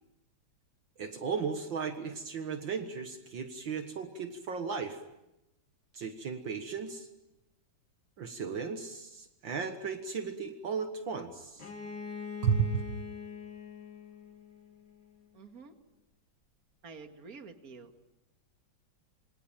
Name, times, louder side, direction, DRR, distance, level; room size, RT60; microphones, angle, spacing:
voice 1, 1.0-5.0 5.9-7.1 8.2-11.6 12.4-12.8, right 6 dB, 65° right, 7 dB, 2.3 m, -35 dB
Bowed string instrument, 11.6-15.3, left 6 dB, 60° left, 3.7 m, -44 dB
voice 2, 15.3-15.7 16.8-17.9, right 4 dB, 45° right, 6 dB, 2.5 m, -48 dB
27.0 x 24.5 x 9.0 m, 0.92 s
omnidirectional pair, 2.2 m